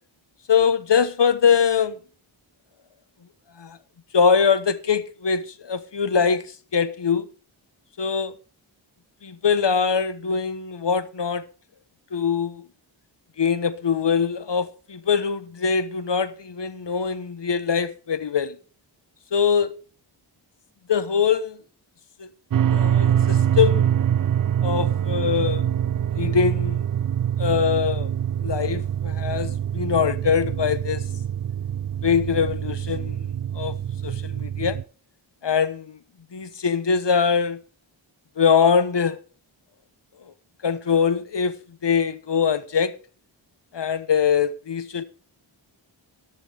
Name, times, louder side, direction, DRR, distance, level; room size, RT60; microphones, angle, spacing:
voice 1, 0.5-1.9 3.6-3.8 4.1-6.4 6.7-7.3 8.0-8.3 9.2-11.4 12.1-12.7 13.4-18.6 19.3-19.7 20.9-21.6 22.2-22.3 22.7-24.0 24.6-25.6 26.2-26.8 27.4-28.1 28.4-31.0 32.0-33.3 33.5-33.7 34.0-34.8 35.4-36.0 36.3-37.6 38.4-39.2 40.6-41.6 41.8-42.9 43.7-45.0, left 6 dB, 60° left, 1.1 m, -22 dB
sound 1, 22.5-34.8, right 9 dB, 45° right, 0.4 m, -24 dB
13.0 x 11.0 x 3.4 m
cardioid pair, 45°, 48 cm